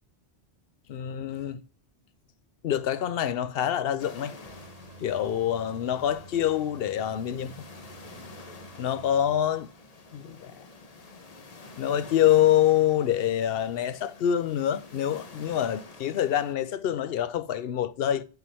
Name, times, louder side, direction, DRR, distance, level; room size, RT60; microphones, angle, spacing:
voice 1, 0.9-1.6 2.6-4.4 5.0-7.5 8.8-9.7 10.1-10.7 11.8-18.2, left 10 dB, 70° left, 0.8 m, -26 dB
sound 1, 4.0-16.5, left 3 dB, 40° left, 1.0 m, -48 dB
sound 2, 4.4-9.4, right 3 dB, 45° right, 0.9 m, -51 dB
7.0 x 5.9 x 3.4 m
omnidirectional pair, 1.1 m